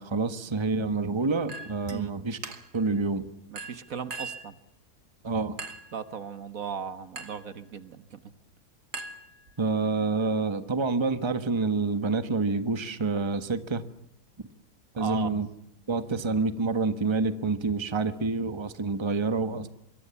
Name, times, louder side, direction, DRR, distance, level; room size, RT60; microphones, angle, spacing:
voice 1, 0.0-2.4 2.7-3.3 5.2-5.6 9.6-13.8 15.0-15.5 15.9-19.7, right 3 dB, 20° right, 10 dB, 1.2 m, -27 dB
Chink clink, 1.5-2.0 2.4-2.9 3.6-4.5 5.6-6.0 7.2-7.5 8.9-9.7, right 3 dB, 85° right, 2.5 m, -40 dB
voice 2, 3.5-4.5 5.9-8.2 15.0-15.4, right 6 dB, 60° right, 11 dB, 1.7 m, -37 dB
25.0 x 23.5 x 7.0 m, 0.77 s
omnidirectional pair, 1.6 m